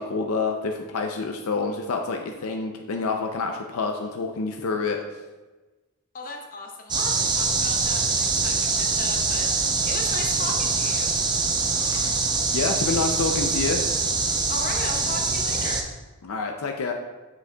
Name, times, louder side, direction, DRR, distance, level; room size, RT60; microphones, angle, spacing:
voice 1, 0.0-5.0 12.5-13.8 16.2-16.9, left 4 dB, 70° left, 3 dB, 0.5 m, -27 dB
voice 2, 6.1-11.1 14.5-15.9, left 3 dB, 40° left, 2 dB, 0.8 m, -36 dB
sound 1, 6.9-15.8, right 4 dB, 20° right, 0.5 m, -24 dB
7.4 x 6.4 x 2.3 m, 1.2 s
head